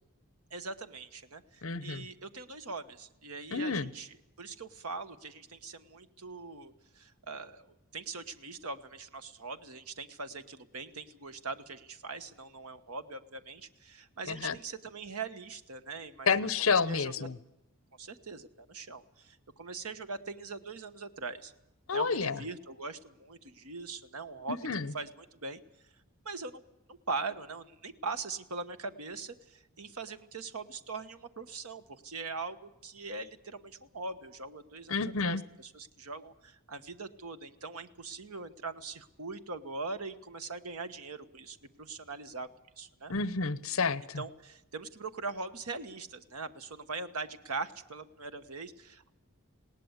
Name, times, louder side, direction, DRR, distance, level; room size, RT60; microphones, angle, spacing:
voice 1, 0.5-7.7 7.9-16.3 16.7-17.3 18.0-21.5 21.9-24.6 24.9-25.6 26.2-26.6 26.9-35.0 35.2-42.5 42.8-43.1 44.2-49.1, right 4 dB, 80° right, 10 dB, 1.2 m, -41 dB
voice 2, 1.6-2.1 3.5-3.9 14.3-14.6 16.3-17.4 21.9-22.4 24.5-24.9 34.9-35.4 43.1-44.2, left 5 dB, 65° left, 17 dB, 0.9 m, -30 dB
20.0 x 18.0 x 8.1 m, 0.89 s
head